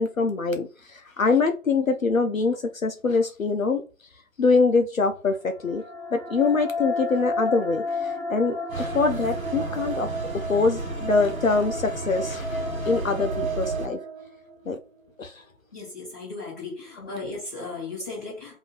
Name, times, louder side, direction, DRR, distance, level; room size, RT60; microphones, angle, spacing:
voice 1, 0.0-3.8 4.4-5.8 6.1-10.1 10.5-14.0 14.7-14.8 15.2-15.4 17.0-17.1, left 4 dB, 65° left, 0.6 m, -24 dB
sound 1, 5.4-14.7, left 1 dB, 40° right, 0.7 m, -32 dB
sound 2, 8.7-13.9, right 2 dB, 70° right, 1.1 m, -33 dB
voice 2, 15.7-18.6, left 3 dB, 10° left, 1.0 m, -36 dB
3.5 x 2.7 x 3.8 m
figure-of-eight pair, 165°, 44 cm